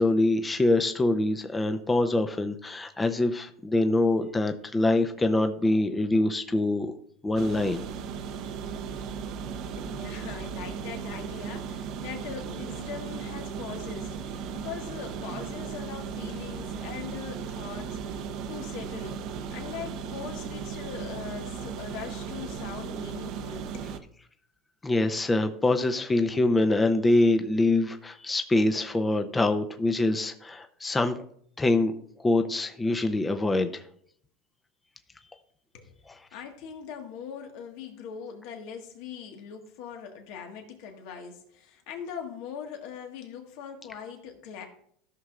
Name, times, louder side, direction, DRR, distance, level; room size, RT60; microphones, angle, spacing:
voice 1, 0.0-6.9 7.2-7.8 24.8-31.2 31.6-31.9 32.2-33.8, left 2 dB, 15° left, 0.7 m, -24 dB
sound 1, 7.4-24.0, right 6 dB, 55° right, 0.7 m, -36 dB
voice 2, 9.7-19.2 19.5-23.9 35.7-36.0 36.3-44.7, left 7 dB, 70° left, 1.6 m, -41 dB
14.0 x 6.3 x 2.5 m
supercardioid pair, 105°, 0 cm